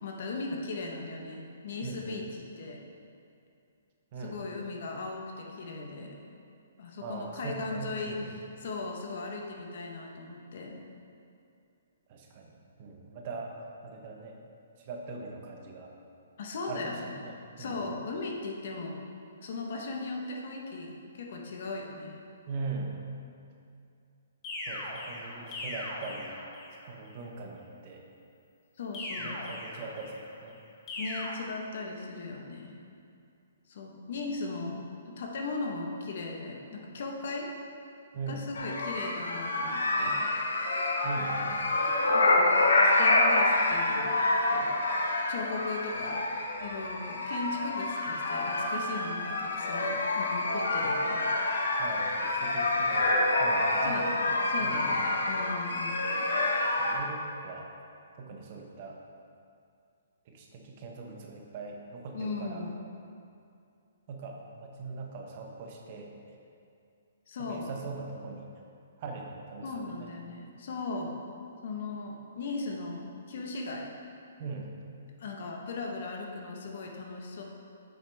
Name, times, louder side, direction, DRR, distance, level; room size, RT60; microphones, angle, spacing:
voice 1, 0.0-2.8 4.2-6.2 6.8-10.8 16.4-17.1 17.6-19.0 19.4-22.1 28.8-29.4 31.0-32.8 33.7-37.5 38.3-40.3 42.1-44.1 44.5-44.8 45.3-46.2 46.6-51.3 53.8-56.1 62.1-62.8 67.3-67.7 69.6-71.2 71.6-73.9 75.2-77.4, left 3 dB, 55° left, 1 dB, 1.0 m, -38 dB
voice 2, 1.8-2.2 4.1-4.4 7.0-8.3 12.1-14.4 14.8-15.9 16.7-17.8 22.5-23.0 24.7-26.3 26.8-28.0 29.2-30.6 38.1-38.4 41.0-41.6 51.8-54.0 54.6-55.0 56.8-57.7 58.2-59.0 60.3-62.6 64.1-66.1 67.4-68.5 69.0-70.1 74.4-74.7, right 4 dB, 35° right, 1 dB, 0.8 m, -41 dB
sound 1, 24.4-26.9 28.9-30.3 30.9-31.3, left 1 dB, 20° left, 1.2 m, -39 dB
sound 2, 38.6-56.9, left 2 dB, 85° left, 1.0 m, -27 dB
7.7 x 6.3 x 3.4 m, 2.5 s
hypercardioid pair, 160°, 0 cm